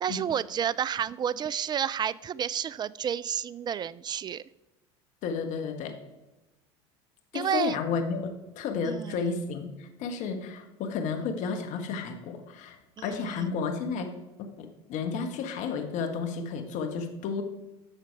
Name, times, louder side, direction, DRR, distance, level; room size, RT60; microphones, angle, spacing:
voice 1, 0.0-4.4 7.3-7.8 8.8-9.2 13.0-13.4, right 9 dB, 30° right, 20 dB, 0.4 m, -30 dB
voice 2, 5.2-6.0 7.3-12.8 13.0-14.1 14.4-17.4, left 5 dB, 55° left, 6 dB, 1.5 m, -32 dB
11.5 x 6.8 x 4.7 m, 1.1 s
hypercardioid pair, 80°, 14 cm